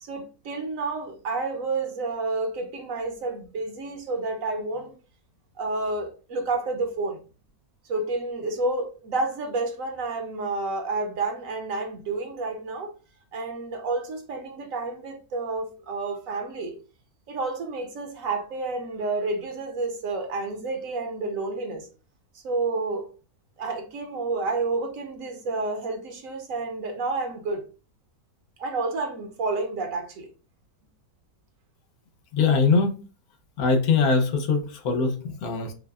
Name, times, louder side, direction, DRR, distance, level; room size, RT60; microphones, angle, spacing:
voice 1, 0.0-4.9 5.6-7.2 7.9-12.9 13.3-16.7 17.3-21.9 22.4-23.1 23.6-27.6 28.6-30.3, right 3 dB, 65° right, 1.1 m, -30 dB
voice 2, 32.3-33.0 33.6-35.7, left 4 dB, 75° left, 1.3 m, -22 dB
5.4 x 2.1 x 2.3 m
omnidirectional pair, 1.6 m